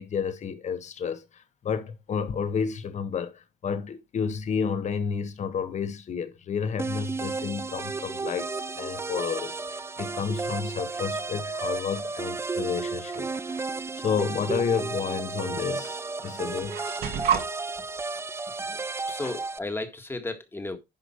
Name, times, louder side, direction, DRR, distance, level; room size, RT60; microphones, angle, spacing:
voice 1, 0.0-13.6 13.9-16.8 19.1-19.2, left 6 dB, 45° left, 1.5 m, -31 dB
sound 1, 6.8-19.6, right 3 dB, 15° right, 0.5 m, -33 dB
sound 2, 13.1-13.7 14.8-14.9 15.8-17.5, right 8 dB, 65° right, 2.1 m, -30 dB
voice 2, 18.6-20.8, left 2 dB, 15° left, 1.8 m, -35 dB
11.0 x 5.1 x 4.5 m
cardioid pair, 110°, 17 cm